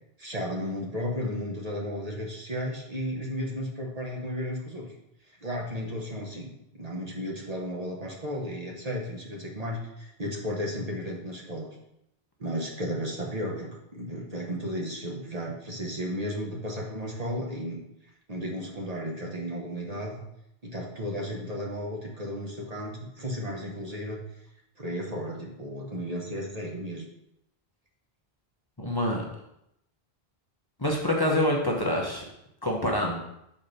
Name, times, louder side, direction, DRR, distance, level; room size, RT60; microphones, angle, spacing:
voice 1, 0.2-4.9 5.4-11.7 12.4-17.8 18.3-20.2 20.6-24.2 24.8-27.0, equal, 40° right, -2 dB, 1.2 m, -34 dB
voice 2, 28.8-29.2 30.8-32.2 32.6-33.2, left 1 dB, 25° left, -2 dB, 0.9 m, -26 dB
6.1 x 4.3 x 5.1 m, 0.82 s
omnidirectional pair, 1.0 m